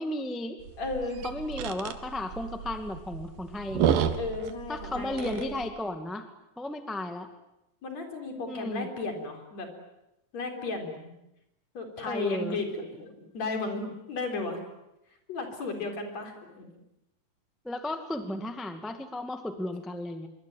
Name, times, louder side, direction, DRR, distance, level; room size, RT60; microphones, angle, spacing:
voice 1, 0.0-0.6 1.2-4.0 4.7-6.3 6.6-7.3 8.5-8.9 12.1-12.6 17.6-20.3, left 1 dB, ahead, 7 dB, 0.7 m, -34 dB
sound 1, 0.6-5.7, right 9 dB, 80° right, 3.3 m, -31 dB
voice 2, 0.8-1.3 4.2-5.5 7.8-9.7 10.3-11.1 11.8-14.6 15.3-16.7, left 3 dB, 50° left, 4 dB, 5.2 m, -34 dB
25.5 x 24.0 x 9.3 m, 0.90 s
omnidirectional pair, 4.1 m